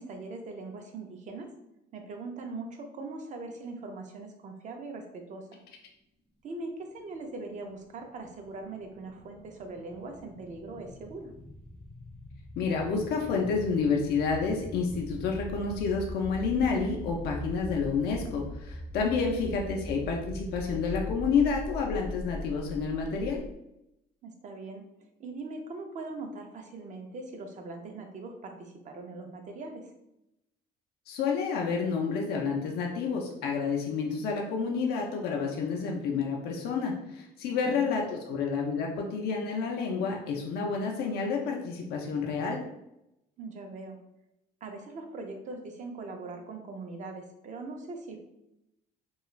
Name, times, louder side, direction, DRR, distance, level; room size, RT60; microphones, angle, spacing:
voice 1, 0.0-1.5 1.9-5.6 6.4-11.3 19.2-19.5 24.2-24.8 25.2-29.9 37.6-38.1 43.4-44.0 44.6-48.2, right 3 dB, 45° right, 4 dB, 0.5 m, -41 dB
sound 1, 7.6-23.5, equal, 5° left, 0.5 m, -41 dB
voice 2, 12.6-23.4 31.1-42.6, left 5 dB, 70° left, 0 dB, 0.5 m, -29 dB
2.4 x 2.3 x 3.0 m, 0.86 s
cardioid pair, 110°, 17 cm